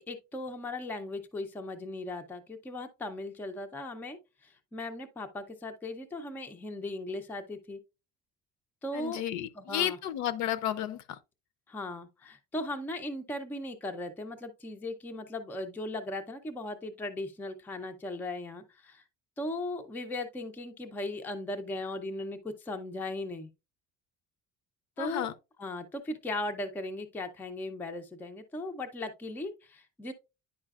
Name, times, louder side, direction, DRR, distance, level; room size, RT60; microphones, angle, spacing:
voice 1, 0.0-7.8 8.8-9.2 9.5-10.0 11.7-19.0 19.4-23.5 25.0-25.3 25.6-30.1, left 2 dB, 5° left, 0.4 m, -38 dB
voice 2, 8.9-11.2 25.0-25.3, left 11 dB, 60° left, 0.5 m, -32 dB
9.8 x 4.8 x 2.3 m
cardioid pair, 175°, 32 cm